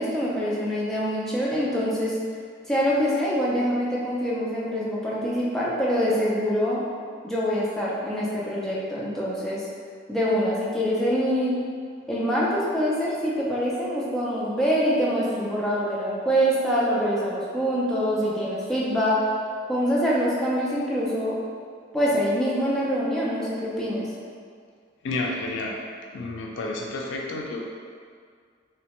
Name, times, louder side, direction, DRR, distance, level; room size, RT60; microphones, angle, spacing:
voice 1, 0.0-2.1 2.7-6.8 7.2-9.6 10.1-11.6 12.1-19.2 19.7-21.4 21.9-24.1, equal, ahead, -7 dB, 0.4 m, -25 dB
voice 2, 25.0-25.8 26.1-27.7, left 2 dB, 80° left, -1 dB, 0.3 m, -30 dB
2.8 x 2.1 x 2.9 m, 2.1 s
head